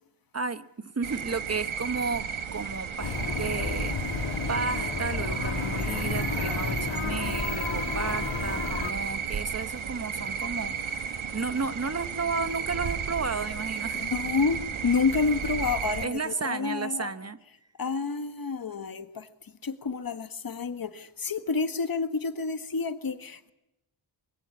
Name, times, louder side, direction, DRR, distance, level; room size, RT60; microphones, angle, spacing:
voice 1, 0.3-4.2 4.5-14.1 16.0-17.4, right 4 dB, 30° right, 1.0 m, -33 dB
sound 1, 1.0-16.1, right 6 dB, 85° right, 1.4 m, -33 dB
sound 2, 3.0-8.9, left 5 dB, 70° left, 2.4 m, -32 dB
voice 2, 13.9-17.1 17.8-23.5, left 4 dB, 50° left, 1.6 m, -29 dB
24.5 x 22.0 x 8.6 m
wide cardioid pair, 110°, 47 cm